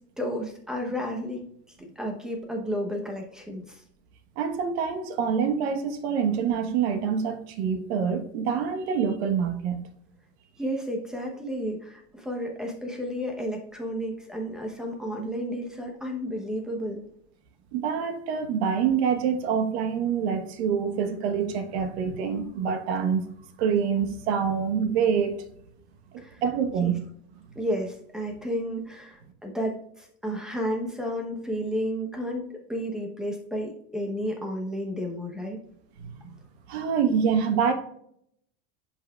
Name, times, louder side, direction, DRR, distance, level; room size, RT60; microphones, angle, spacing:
voice 1, 0.2-1.4 1.7-3.8 10.6-17.0 21.8-21.9 26.2-26.4 26.8-26.9 27.5-35.6, equal, ahead, 0.9 m, -32 dB
voice 2, 4.4-9.8 17.7-23.2 23.6-25.4 26.4-27.0 36.0-36.3 36.7-37.7, right 7 dB, 60° right, 1.2 m, -26 dB
10.0 x 5.8 x 2.4 m
supercardioid pair, 160°, 35 cm